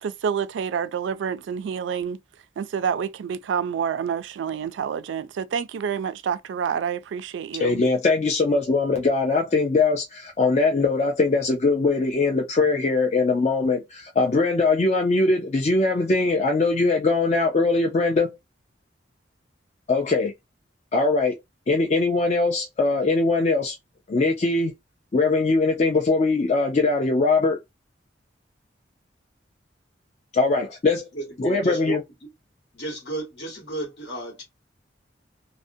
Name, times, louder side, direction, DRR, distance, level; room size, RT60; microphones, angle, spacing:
voice 1, 0.0-2.2 2.6-7.8, right 7 dB, 85° right, 0.3 m, -28 dB
voice 2, 7.6-18.4 19.9-20.3 20.9-21.3 21.7-23.8 24.1-24.7 25.1-27.6 30.3-31.1 31.4-32.0, left 3 dB, 35° left, 0.4 m, -21 dB
voice 3, 31.1-32.0 32.7-34.4, right 2 dB, 65° left, 1.3 m, -32 dB
2.5 x 2.1 x 2.6 m
head